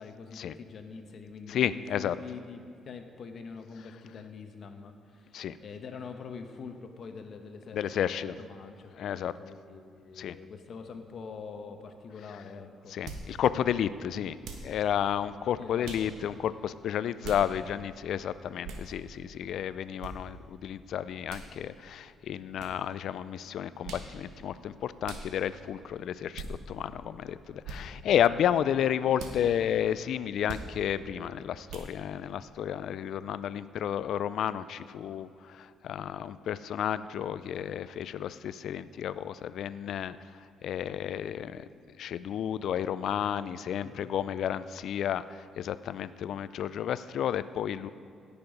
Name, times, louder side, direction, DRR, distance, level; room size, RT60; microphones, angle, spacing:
voice 1, 0.0-12.9 15.6-16.1 43.8-44.1, left 5 dB, 55° left, 6 dB, 1.0 m, -45 dB
voice 2, 1.5-2.2 5.3-5.6 7.7-8.3 9.0-9.3 10.2-10.4 12.9-14.4 14.6-40.2 40.6-41.6 42.0-47.9, left 9 dB, 70° left, 15 dB, 0.3 m, -31 dB
sound 1, 13.1-13.3 14.4-14.7 15.8-16.1 17.2-17.5 18.6-18.9 20.0-20.1 21.3-21.5 22.6-22.7 23.8-24.1 25.0-25.3 26.3-26.5 27.6-27.8 29.2-29.4 30.5-30.7 31.7-31.9, right 4 dB, 85° right, 1.3 m, -40 dB
16.5 x 6.9 x 5.2 m, 2.5 s
cardioid pair, 90°, 0 cm